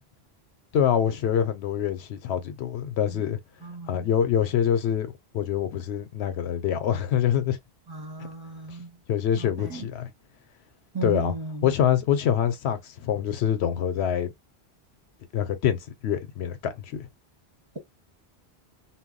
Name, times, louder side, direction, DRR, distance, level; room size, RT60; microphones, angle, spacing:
voice 1, 0.7-3.4 3.9-7.6 9.1-10.1 11.0-11.3 11.6-14.3 15.3-17.1, left 9 dB, 85° left, 0.9 m, -25 dB
voice 2, 3.6-4.1 7.9-9.0 9.4-9.9 10.9-11.7, right 3 dB, 25° right, 0.7 m, -35 dB
2.2 x 2.1 x 3.6 m
omnidirectional pair, 1.1 m